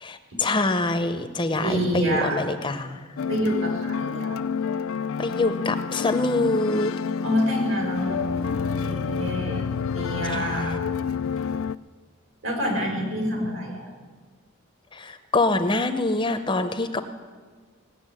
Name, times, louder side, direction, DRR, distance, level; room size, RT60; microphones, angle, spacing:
voice 1, 0.0-3.2 5.2-6.9 10.2-10.8 14.9-17.0, left 2 dB, 25° left, 9 dB, 0.6 m, -25 dB
voice 2, 1.5-2.4 3.3-4.4 7.2-9.7 9.9-10.8 12.4-13.9, equal, 70° right, 0 dB, 4.6 m, -27 dB
sound 1, 3.2-11.8, left 6 dB, 85° left, 0.4 m, -28 dB
18.0 x 7.0 x 9.9 m, 1.5 s
head